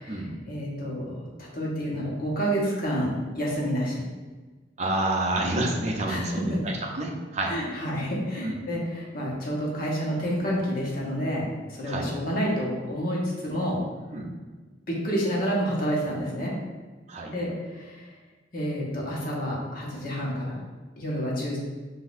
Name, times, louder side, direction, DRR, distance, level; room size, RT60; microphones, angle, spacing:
voice 1, 0.0-3.1 3.4-4.0 6.1-6.6 7.5-13.8 14.9-16.5 17.3-18.1 18.5-20.6 21.0-21.6, equal, 55° left, -4 dB, 1.1 m, -29 dB
voice 2, 4.8-7.5 8.4-8.5 11.9-12.1 14.1-14.3 17.1-17.3, right 1 dB, 40° right, 0 dB, 0.6 m, -28 dB
6.0 x 2.7 x 2.6 m, 1.3 s
head